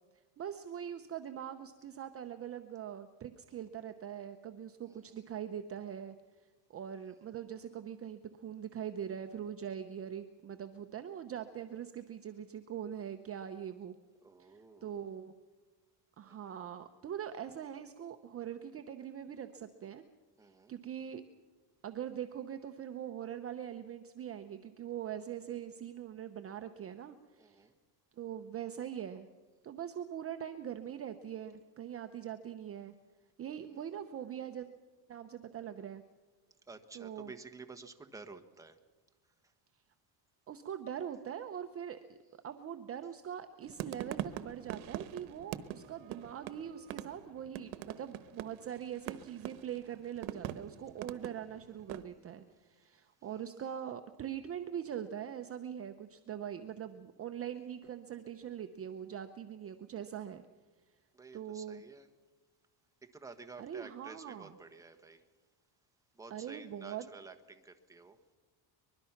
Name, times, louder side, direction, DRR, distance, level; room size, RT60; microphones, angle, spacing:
voice 1, 0.4-6.2 6.7-14.0 14.4-15.3 16.2-20.0 20.7-21.2 21.8-27.7 28.2-29.3 29.6-32.9 33.4-34.7 35.1-36.0 36.9-37.3 40.5-42.0 42.4-60.4 61.3-61.8 63.6-64.5 66.3-67.1, right 9 dB, 30° right, 7 dB, 0.8 m, -42 dB
voice 2, 4.8-5.2 14.2-14.9 16.2-16.5 20.4-20.7 27.4-27.7 33.7-33.9 36.7-38.8 53.2-53.4 61.1-62.1 63.0-65.2 66.1-68.2, right 4 dB, 5° right, 5 dB, 1.3 m, -52 dB
sound 1, 43.6-52.0, right 12 dB, 85° right, 1.2 m, -43 dB
24.0 x 21.5 x 5.9 m, 1.3 s
cardioid pair, 150°, 46 cm